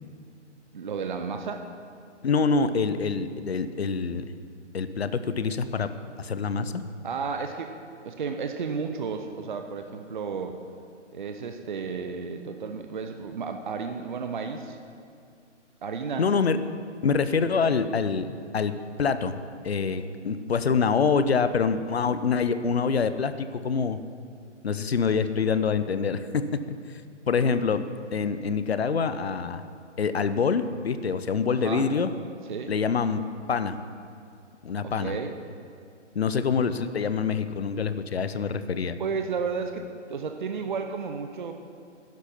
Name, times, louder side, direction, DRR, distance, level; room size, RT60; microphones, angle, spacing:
voice 1, 0.7-1.6 7.0-7.7 8.0-10.6 11.1-14.8 15.8-16.3 17.4-17.8 31.5-31.9 32.5-32.7 34.8-35.4 39.0-39.8 40.1-41.5, right 5 dB, 40° right, 6 dB, 0.7 m, -32 dB
voice 2, 2.2-4.2 4.7-5.9 6.2-6.8 16.2-16.6 17.0-18.7 19.0-19.4 19.6-24.0 24.6-26.4 26.9-27.0 27.3-27.8 28.1-29.6 30.0-32.1 32.7-33.2 33.5-33.8 34.6-35.2 36.1-39.0, left 5 dB, 55° left, 11 dB, 0.8 m, -25 dB
12.0 x 10.5 x 5.7 m, 2.4 s
figure-of-eight pair, 140°, 36 cm